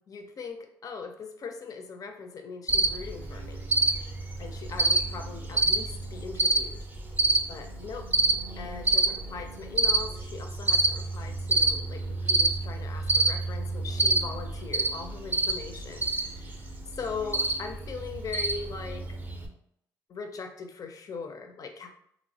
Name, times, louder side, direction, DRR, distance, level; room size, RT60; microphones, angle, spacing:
voice 1, 0.0-3.7 4.4-6.8 7.5-8.1 8.6-16.7 17.0-19.2 20.1-21.9, left 5 dB, 50° left, 5 dB, 0.4 m, -40 dB
Cricket, 2.7-19.5, right 2 dB, 20° right, 0.5 m, -28 dB
3.0 x 2.0 x 2.7 m, 0.70 s
cardioid pair, 85°, 8 cm